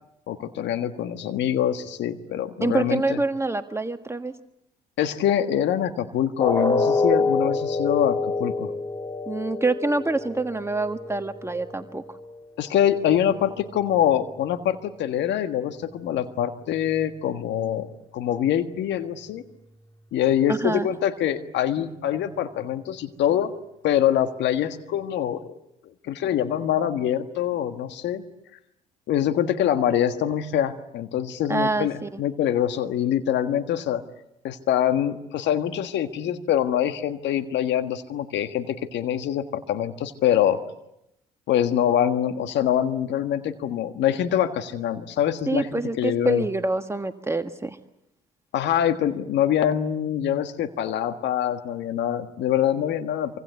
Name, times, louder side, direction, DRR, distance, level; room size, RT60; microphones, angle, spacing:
voice 1, 0.3-3.2 5.0-8.7 12.6-19.4 20.1-23.5 23.8-25.5 26.0-28.2 29.1-34.0 34.4-40.6 41.5-46.5 48.5-53.4, left 10 dB, 60° left, 9 dB, 1.6 m, -24 dB
voice 2, 2.6-4.3 9.3-12.0 20.5-20.9 31.5-32.2 45.5-47.8, right 3 dB, 15° right, 7 dB, 1.5 m, -26 dB
sound 1, 6.4-12.4 12.8-13.0 13.4-13.5, left 3 dB, 20° left, 2.8 m, -27 dB
26.0 x 25.0 x 8.2 m, 0.83 s
hypercardioid pair, 60°, 20 cm